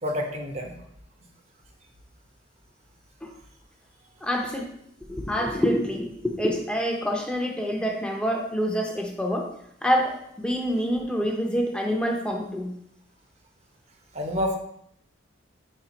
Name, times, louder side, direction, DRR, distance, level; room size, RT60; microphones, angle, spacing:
voice 1, 0.0-0.8 14.1-14.6, left 1 dB, 35° right, 2 dB, 0.9 m, -28 dB
voice 2, 4.2-4.7 5.1-9.5 9.8-12.7, equal, 5° left, 1 dB, 0.7 m, -26 dB
5.0 x 4.4 x 5.1 m, 0.72 s
head